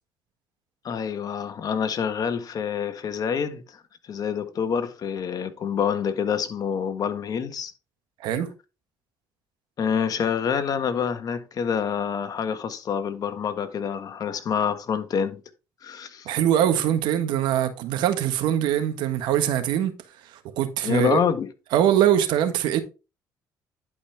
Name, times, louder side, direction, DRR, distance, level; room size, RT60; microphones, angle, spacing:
voice 1, 0.8-3.8 4.1-7.7 9.8-15.4 15.8-16.3 20.8-21.5, left 7 dB, 55° left, 1.6 m, -27 dB
voice 2, 8.2-8.5 16.2-19.9 20.3-21.2 21.7-22.8, right 10 dB, 85° right, 1.5 m, -22 dB
11.0 x 5.3 x 3.4 m
supercardioid pair, 80°, 8 cm